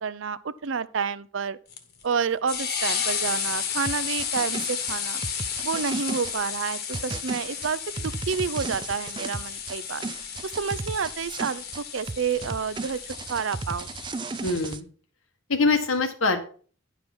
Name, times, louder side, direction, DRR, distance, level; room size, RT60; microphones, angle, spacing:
voice 1, 0.0-1.6 2.0-5.2 5.6-10.1 10.4-13.0 13.3-13.9, right 6 dB, 70° right, 0.6 m, -29 dB
sound 1, 1.7-14.8, left 7 dB, 50° left, 1.3 m, -33 dB
sound 2, 3.8-6.3 6.9-9.8 10.0-11.8 12.1-14.8, right 4 dB, 25° right, 0.3 m, -35 dB
voice 2, 14.4-14.9 15.5-16.4, left 3 dB, 90° left, 1.6 m, -23 dB
10.5 x 5.1 x 6.1 m
head